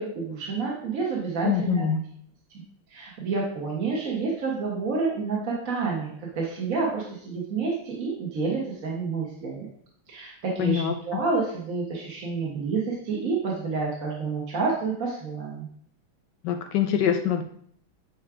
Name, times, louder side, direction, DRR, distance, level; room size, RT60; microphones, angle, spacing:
voice 1, 0.0-1.8 2.9-9.7 10.1-15.7, right 4 dB, 50° right, -3 dB, 1.5 m, -29 dB
voice 2, 1.4-2.0 10.6-10.9 16.4-17.4, left 8 dB, 70° left, 6 dB, 1.1 m, -24 dB
9.3 x 3.2 x 4.8 m, 0.63 s
omnidirectional pair, 2.2 m